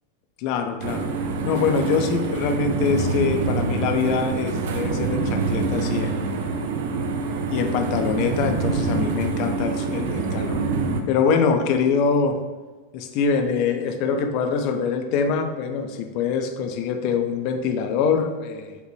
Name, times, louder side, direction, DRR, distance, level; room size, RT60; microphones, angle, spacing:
voice 1, 0.4-1.1 1.4-6.2 7.5-10.6 11.1-12.4 12.9-18.8, left 6 dB, 45° left, 6 dB, 0.3 m, -24 dB
sound 1, 0.8-11.0, right 4 dB, 55° right, 0.3 m, -26 dB
4.0 x 2.1 x 3.2 m, 1.3 s
figure-of-eight pair, 90°, 0 cm